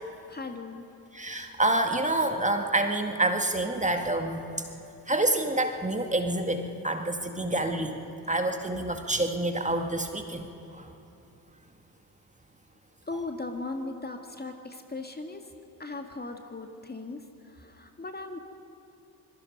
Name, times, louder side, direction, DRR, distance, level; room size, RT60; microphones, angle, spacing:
voice 1, 0.3-0.9 13.1-15.5 15.8-18.4, left 3 dB, 20° left, 5 dB, 1.9 m, -38 dB
voice 2, 1.1-4.4 5.1-7.9 8.3-10.4 10.7-10.9, right 1 dB, 15° right, 5 dB, 2.0 m, -27 dB
25.5 x 22.5 x 5.4 m, 2.8 s
figure-of-eight pair, 40°, 47 cm